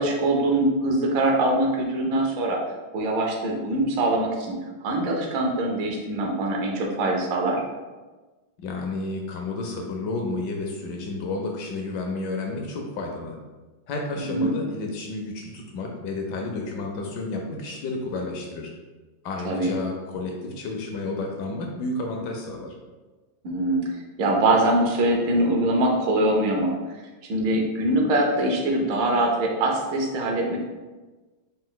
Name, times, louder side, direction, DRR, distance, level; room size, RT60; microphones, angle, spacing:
voice 1, 0.0-2.6 2.9-4.5 4.8-7.6 14.3-14.5 19.4-19.7 23.4-23.9 24.2-26.7 27.3-30.6, right 1 dB, 75° right, 0 dB, 1.4 m, -23 dB
voice 2, 8.6-13.4 13.9-18.7 19.2-22.7, left 3 dB, 75° left, 1 dB, 1.1 m, -31 dB
4.1 x 2.4 x 3.8 m, 1.2 s
omnidirectional pair, 2.1 m